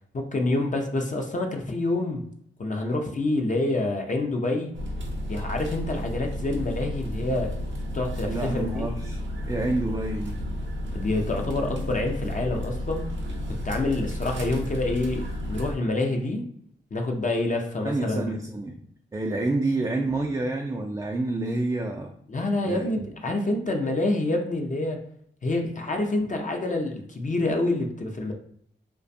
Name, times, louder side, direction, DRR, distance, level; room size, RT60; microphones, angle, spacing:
voice 1, 0.1-2.2 2.6-4.7 5.3-7.5 7.9-8.9 10.9-13.1 13.6-16.4 16.9-18.4 22.3-25.0 25.4-28.3, left 2 dB, 35° left, 2 dB, 0.5 m, -27 dB
sound 1, 4.7-15.7, equal, 60° right, 0.6 m, -32 dB
voice 2, 8.3-9.2 9.5-10.4 17.8-18.8 19.1-22.1 22.7-23.0, right 2 dB, 15° right, 1 dB, 0.4 m, -28 dB
2.4 x 2.2 x 2.6 m, 0.69 s
cardioid pair, 45°, 21 cm